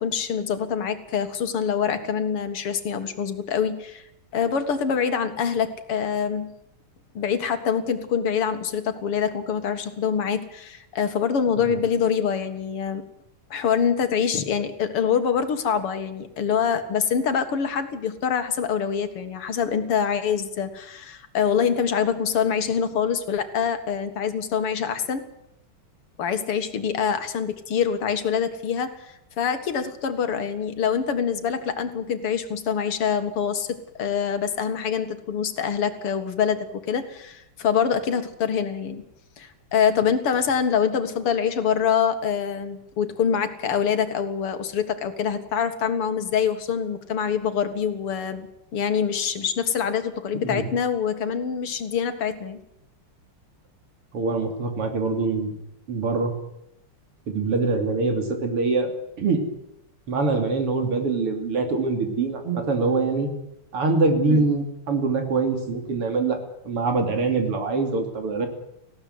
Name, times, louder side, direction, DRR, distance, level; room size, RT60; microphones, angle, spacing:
voice 1, 0.0-4.0 4.3-6.5 7.1-13.0 13.5-25.3 26.2-39.0 39.4-48.5 48.7-52.6 64.3-64.4, left 7 dB, 85° left, 8 dB, 2.7 m, -25 dB
voice 2, 54.1-55.5 55.9-56.3 57.3-58.9 59.2-59.4 60.1-63.3 63.7-66.4 66.7-68.5, right 3 dB, 85° right, 5 dB, 3.8 m, -24 dB
19.0 x 16.0 x 9.5 m, 0.81 s
omnidirectional pair, 2.4 m